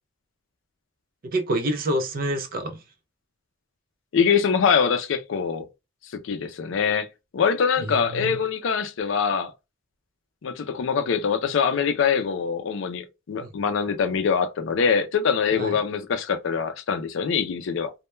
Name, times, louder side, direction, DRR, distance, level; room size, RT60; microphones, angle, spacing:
voice 1, 1.2-2.8 7.8-8.4 13.4-13.5 15.5-15.7, right 1 dB, 45° right, 0.4 m, -27 dB
voice 2, 4.1-5.7 6.1-7.1 7.3-9.5 10.4-17.9, left 6 dB, 65° left, 0.4 m, -24 dB
2.1 x 2.1 x 3.0 m
head